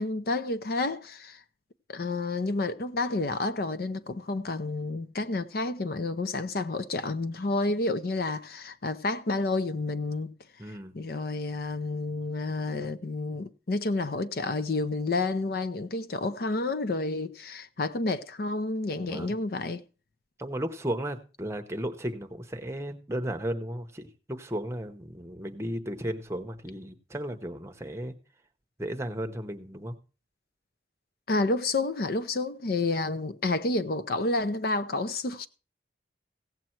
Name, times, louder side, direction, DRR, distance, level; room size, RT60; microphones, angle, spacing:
voice 1, 0.0-1.4 1.9-10.3 10.7-19.8 31.3-35.5, left 2 dB, 55° left, 0.6 m, -30 dB
voice 2, 10.6-10.9 19.0-19.3 20.4-28.1 28.8-29.9, right 1 dB, 15° right, 0.9 m, -34 dB
16.0 x 7.6 x 4.4 m
head